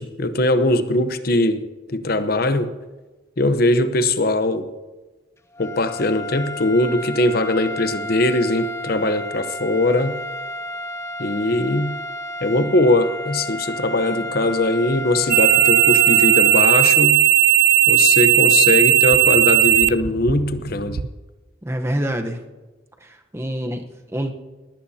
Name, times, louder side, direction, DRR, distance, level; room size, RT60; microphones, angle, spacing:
voice 1, 0.0-1.6 1.9-2.7 3.4-4.6 5.6-10.2 11.2-11.9 12.4-17.2 17.9-21.0, left 2 dB, 55° left, 10 dB, 0.9 m, -20 dB
sound 1, 5.5-17.1, equal, 15° left, 0.7 m, -32 dB
sound 2, 15.3-21.1, right 15 dB, 50° right, 0.4 m, -16 dB
voice 2, 21.6-22.4 23.0-24.3, equal, 15° right, 4 dB, 1.0 m, -26 dB
20.0 x 16.5 x 2.8 m, 1.2 s
head